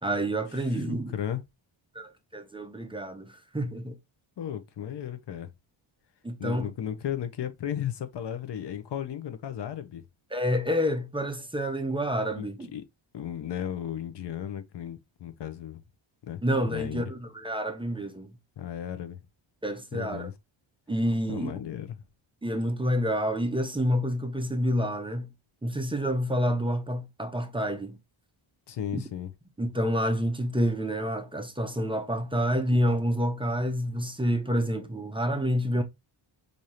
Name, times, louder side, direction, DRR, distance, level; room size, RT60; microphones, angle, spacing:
voice 1, 0.0-1.1 1.9-4.0 6.2-6.7 10.3-12.7 16.4-18.3 19.6-20.3 20.9-21.5 22.4-25.3 25.6-28.0 28.9-29.0 29.6-35.8, equal, 10° right, 0.4 m, -28 dB
voice 2, 0.5-1.4 4.4-5.5 6.4-10.0 12.3-12.8 13.1-15.8 16.2-16.4 16.7-17.1 18.6-19.2 19.9-20.3 21.3-22.0 28.7-29.3, left 10 dB, 55° left, 0.7 m, -35 dB
4.9 x 2.7 x 2.7 m
wide cardioid pair, 120°, 49 cm